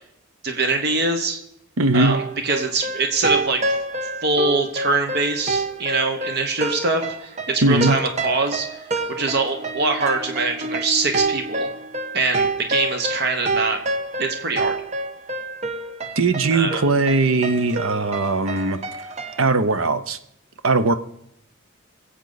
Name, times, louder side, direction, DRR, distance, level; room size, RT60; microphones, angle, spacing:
voice 1, 0.4-1.4 1.9-3.6 4.2-8.7 9.1-11.7 12.1-13.8 14.2-14.8 16.5-16.8, right 3 dB, 50° right, 5 dB, 1.3 m, -23 dB
voice 2, 1.8-2.2 7.6-8.0 16.2-18.8 19.4-20.2 20.6-20.9, right 3 dB, 80° right, 11 dB, 0.9 m, -19 dB
sound 1, 2.1-19.4, right 3 dB, 30° right, 0.7 m, -28 dB
23.0 x 8.1 x 4.1 m, 0.73 s
head